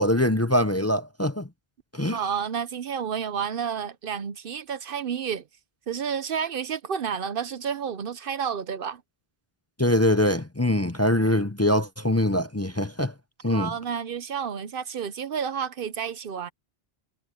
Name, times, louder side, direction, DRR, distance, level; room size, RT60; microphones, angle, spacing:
voice 1, 0.0-1.5 1.9-2.2 9.8-13.1 13.4-13.7, left 1 dB, 15° left, 0.7 m, -23 dB
voice 2, 2.1-5.4 5.9-9.0 13.5-16.5, right 7 dB, 65° right, 0.9 m, -30 dB
omnidirectional pair, 1.0 m